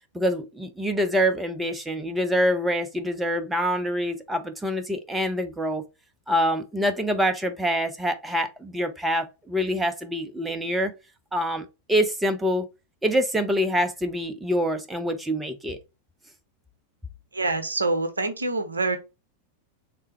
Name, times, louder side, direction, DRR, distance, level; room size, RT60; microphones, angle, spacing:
voice 1, 0.1-5.8 6.3-10.9 11.3-12.7 13.0-15.8, equal, 10° right, 0.6 m, -25 dB
voice 2, 17.3-19.0, right 2 dB, 75° right, 0.7 m, -26 dB
3.3 x 3.3 x 3.1 m
figure-of-eight pair, 90°, 0 cm